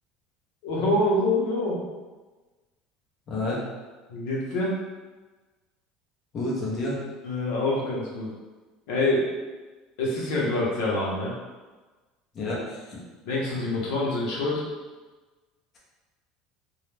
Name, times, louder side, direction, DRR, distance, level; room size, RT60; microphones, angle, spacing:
voice 1, 0.6-1.8 4.1-4.8 7.2-8.3 8.9-9.3 10.0-11.3 13.3-14.6, left 2 dB, 70° left, -4 dB, 0.7 m, -26 dB
voice 2, 3.3-3.6 6.3-7.0 12.3-13.0 13.5-13.6, left 2 dB, 30° left, -5 dB, 0.6 m, -30 dB
2.3 x 2.0 x 3.2 m, 1.3 s
cardioid pair, 170°, 0 cm